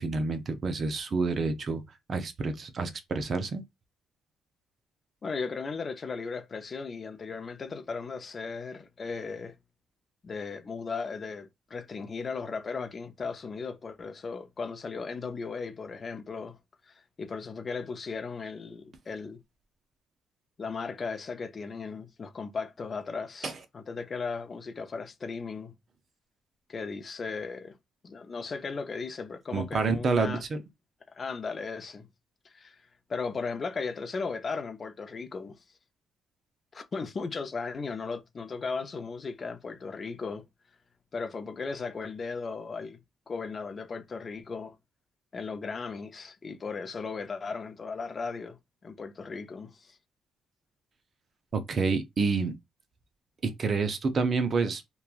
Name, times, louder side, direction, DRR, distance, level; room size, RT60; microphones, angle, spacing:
voice 1, 0.0-1.8 2.1-3.6 23.4-23.6 29.5-30.6 51.5-52.5 53.4-54.8, right 4 dB, 45° right, 0.5 m, -28 dB
voice 2, 5.2-9.6 10.2-16.6 16.9-19.4 20.6-25.7 26.7-27.8 28.0-30.4 31.1-32.1 32.4-32.8 33.1-35.6 36.7-40.4 41.1-43.0 43.3-44.8 45.3-50.0, left 4 dB, 40° left, 0.5 m, -36 dB
2.9 x 2.3 x 2.3 m
cardioid pair, 90°, 0 cm